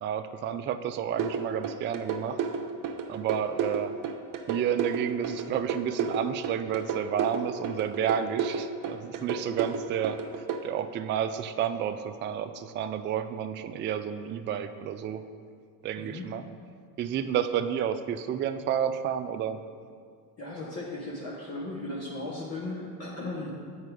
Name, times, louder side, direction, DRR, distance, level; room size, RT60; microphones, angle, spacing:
voice 1, 0.0-2.4 3.1-4.0 4.5-10.2 10.6-15.2 15.8-16.4 17.0-19.6, right 9 dB, 25° right, 9 dB, 0.3 m, -30 dB
sound 1, 1.2-10.6, right 7 dB, 45° right, 0.7 m, -31 dB
voice 2, 16.0-16.3 20.4-23.5, left 2 dB, 30° left, -5 dB, 1.4 m, -36 dB
8.1 x 4.7 x 4.8 m, 2.1 s
hypercardioid pair, 75°, 47 cm